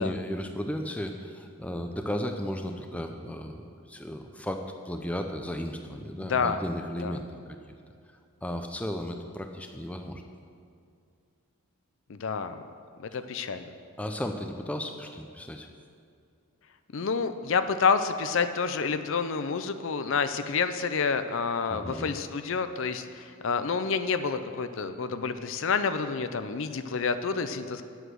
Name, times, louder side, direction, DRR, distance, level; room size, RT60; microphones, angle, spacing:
voice 1, 0.0-7.6 8.4-10.2 13.1-13.2 14.0-15.7 21.7-22.1, equal, 5° left, 5 dB, 0.5 m, -35 dB
voice 2, 6.2-6.6 7.0-7.2 12.1-12.6 13.0-13.7 16.9-27.8, left 5 dB, 60° left, 10 dB, 0.5 m, -28 dB
9.8 x 8.0 x 6.3 m, 2.4 s
head